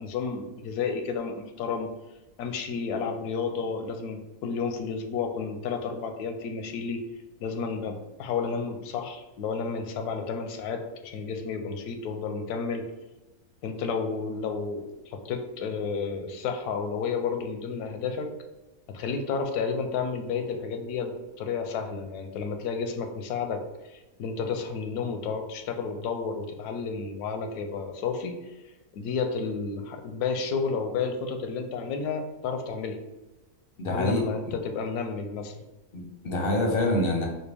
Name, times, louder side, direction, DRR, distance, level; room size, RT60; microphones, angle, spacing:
voice 1, 0.0-1.9 2.4-7.0 7.4-12.9 13.6-18.3 18.9-23.6 23.9-28.5 28.9-33.0 33.9-35.6, left 5 dB, 85° left, 5 dB, 1.1 m, -31 dB
voice 2, 33.8-34.5 35.9-37.3, left 1 dB, 55° left, 1 dB, 0.6 m, -26 dB
4.4 x 2.2 x 3.3 m, 1.1 s
omnidirectional pair, 1.6 m